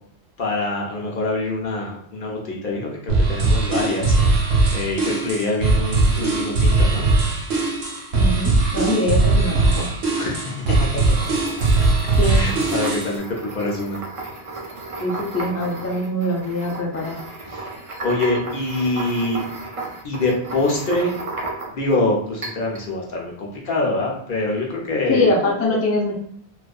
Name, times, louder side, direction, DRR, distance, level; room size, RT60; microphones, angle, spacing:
voice 1, 0.4-4.1 4.7-7.1 10.2-11.3 12.2-14.0 17.5-19.4 20.0-21.1 21.7-25.3, left 2 dB, 60° left, -1 dB, 0.7 m, -25 dB
sound 1, 3.1-13.2, right 3 dB, 70° right, 0.9 m, -19 dB
voice 2, 8.1-9.9 12.2-12.5 15.0-17.2 25.1-26.2, left 1 dB, 25° left, -3 dB, 0.3 m, -23 dB
sound 2, 10.9-21.9 22.4-22.9, right 2 dB, 45° right, 0.4 m, -34 dB
2.5 x 2.4 x 2.2 m, 0.67 s
omnidirectional pair, 1.1 m